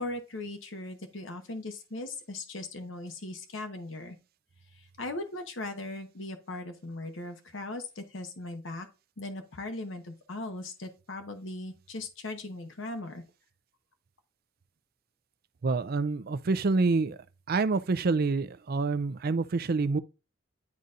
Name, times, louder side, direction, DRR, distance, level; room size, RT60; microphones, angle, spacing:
voice 1, 0.0-4.2 4.7-8.9 9.2-13.2, left 2 dB, 75° left, 1.0 m, -39 dB
voice 2, 15.6-17.2 17.5-20.0, right 3 dB, 50° right, 0.5 m, -27 dB
11.0 x 4.0 x 2.5 m
head